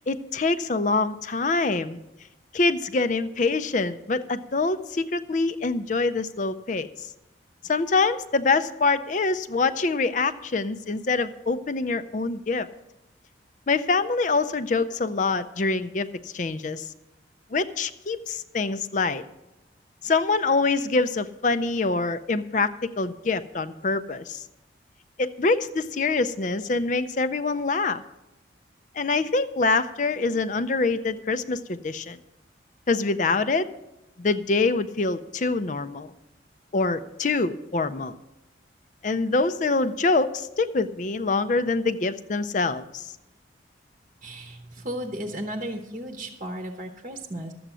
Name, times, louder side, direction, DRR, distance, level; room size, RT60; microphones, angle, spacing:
voice 1, 0.1-2.0 2.5-6.9 7.7-12.7 13.7-16.8 17.5-19.2 20.0-24.4 25.2-28.0 29.0-32.2 32.9-33.7 34.2-36.1 36.7-38.1 39.0-43.1, left 3 dB, 40° left, 12 dB, 0.5 m, -25 dB
voice 2, 44.2-47.5, right 1 dB, 40° right, 5 dB, 0.9 m, -34 dB
12.5 x 7.8 x 6.2 m, 0.93 s
head